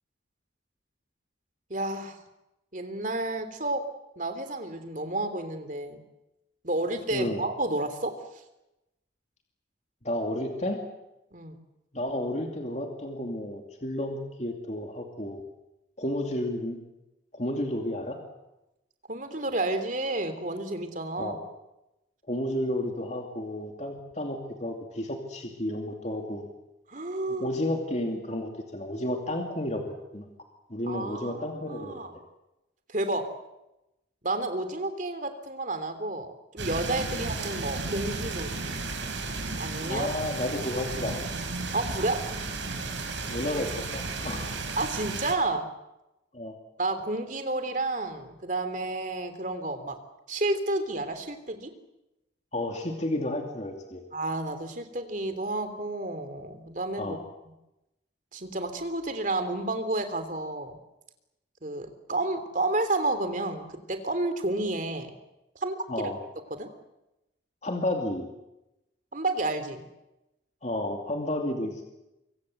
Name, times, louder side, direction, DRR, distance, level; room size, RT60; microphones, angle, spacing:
voice 1, 1.7-2.2 2.7-3.9 4.2-6.0 6.6-8.2 11.3-11.6 19.1-21.3 26.9-27.5 30.9-32.1 32.9-33.3 34.2-38.6 39.6-40.1 41.7-42.2 44.8-45.7 46.8-50.0 50.3-51.7 54.1-57.2 58.3-60.8 61.6-63.6 63.9-65.1 65.5-66.1 66.5-66.7 69.1-69.8, right 2 dB, 40° right, 9 dB, 3.1 m, -31 dB
voice 2, 7.1-7.4 10.0-10.8 11.9-15.4 16.0-16.8 17.3-18.2 21.2-21.4 22.3-26.5 27.3-29.8 30.1-30.3 30.7-32.1 37.1-37.3 39.8-41.2 43.3-44.5 46.3-46.6 52.5-54.0 57.0-57.2 65.9-66.2 67.6-68.3 70.6-71.8, left 1 dB, 35° left, 3 dB, 2.7 m, -32 dB
sound 1, 36.6-45.3, right 3 dB, 75° right, 5.2 m, -34 dB
25.5 x 24.5 x 7.9 m, 0.93 s
head